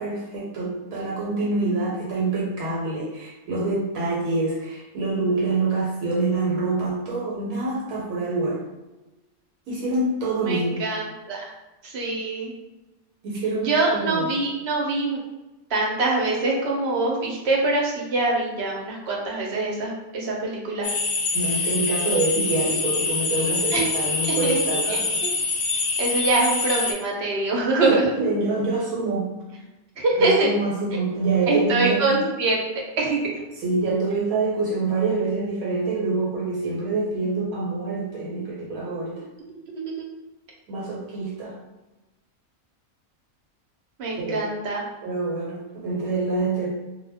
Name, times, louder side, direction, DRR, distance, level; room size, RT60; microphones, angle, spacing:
voice 1, 0.0-8.6 9.7-10.8 13.2-14.3 21.3-25.2 27.9-29.3 30.2-32.2 33.6-39.2 40.7-41.6 44.1-44.5 45.0-46.7, right 3 dB, 80° right, -4 dB, 1.1 m, -26 dB
voice 2, 10.4-11.5 11.8-12.5 13.6-15.2 15.7-20.9 23.7-23.9 24.2-24.6 24.9-25.0 26.0-28.1 30.0-30.5 31.5-32.7 33.0-33.4 39.5-40.0 44.0-44.8, right 2 dB, 60° right, -2 dB, 0.8 m, -24 dB
sound 1, 20.8-26.9, left 4 dB, 70° left, 0.8 m, -25 dB
2.2 x 2.1 x 3.3 m, 1.0 s
omnidirectional pair, 1.4 m